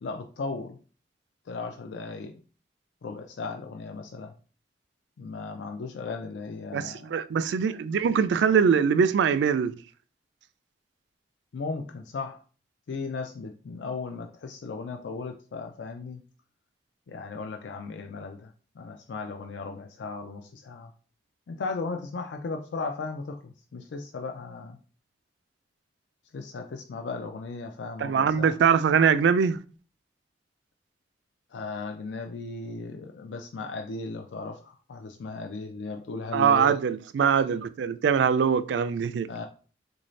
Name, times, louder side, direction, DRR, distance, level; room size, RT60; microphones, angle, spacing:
voice 1, 0.0-0.8 1.5-2.4 3.0-4.3 5.2-7.1 11.5-12.4 12.9-16.2 17.1-20.9 21.5-24.8 26.3-28.6 31.5-36.7 39.3-39.4, left 4 dB, 75° left, 0.4 m, -36 dB
voice 2, 6.7-9.7 28.0-29.6 36.3-39.3, right 6 dB, 75° right, 0.3 m, -22 dB
3.7 x 2.6 x 3.1 m
head